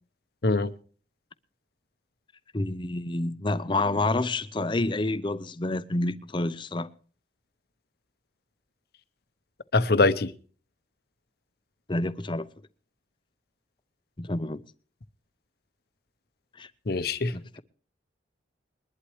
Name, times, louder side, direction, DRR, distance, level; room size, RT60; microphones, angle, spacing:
voice 1, 2.5-6.9 11.9-12.5 14.2-14.6 16.6-16.7 17.3-17.6, left 2 dB, 25° left, 0.6 m, -28 dB
voice 2, 9.7-10.3 16.9-17.3, left 3 dB, 55° left, 0.8 m, -23 dB
21.5 x 11.5 x 3.2 m
head